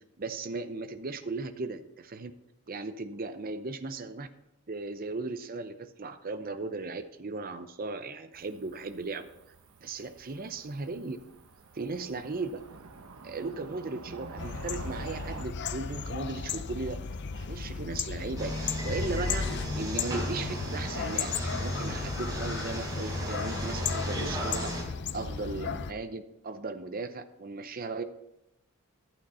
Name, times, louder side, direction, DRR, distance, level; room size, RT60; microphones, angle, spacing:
voice 1, 0.2-2.3 2.7-4.3 4.7-9.3 9.8-11.2 11.7-12.6 13.2-17.0 17.3-24.7 25.1-28.0, right 3 dB, 45° right, 9 dB, 0.7 m, -37 dB
Cricket / Motor vehicle (road), 8.3-15.5, right 3 dB, 80° right, 0.9 m, -48 dB
sound 1, 14.4-25.9, left 5 dB, 55° left, 0.5 m, -35 dB
sound 2, 18.4-24.8, equal, 20° right, 3.7 m, -35 dB
11.5 x 8.9 x 4.2 m, 0.87 s
head